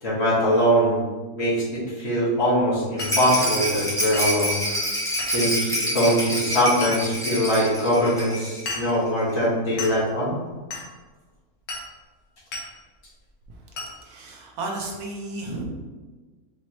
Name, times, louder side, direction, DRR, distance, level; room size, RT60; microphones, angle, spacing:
voice 1, 0.0-1.0 1.4-4.6 5.3-10.4, equal, 45° left, -8 dB, 1.5 m, -22 dB
Glass, 3.0-3.2 4.1-4.4 5.2-5.4 6.8-7.0 7.5-7.6 8.7-9.0 9.8-10.0 10.7-10.9 11.7-11.9 12.5-12.7 13.8-13.9, left 2 dB, 75° left, 1.4 m, -33 dB
Rattle, 3.0-8.7 8.9-9.0 9.3-9.4, equal, 5° left, 0.6 m, -27 dB
voice 2, 14.0-15.6, right 2 dB, 75° right, 0 dB, 1.2 m, -33 dB
4.9 x 3.0 x 2.9 m, 1.3 s
omnidirectional pair, 1.7 m